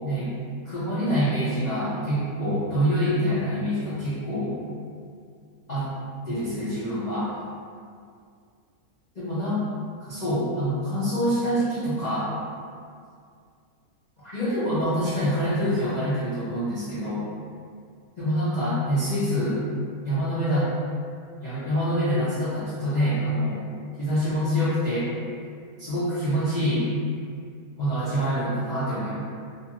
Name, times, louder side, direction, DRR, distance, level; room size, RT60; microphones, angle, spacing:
voice 1, 0.6-4.5 5.7-5.9 6.3-7.3 9.2-9.7 10.0-12.3 14.2-17.3 18.2-19.6 20.0-20.7 21.4-23.6 24.0-25.1 25.8-26.9 27.8-29.1, equal, 65° left, -12 dB, 0.4 m, -25 dB
2.6 x 2.4 x 2.9 m, 2.3 s
omnidirectional pair, 1.6 m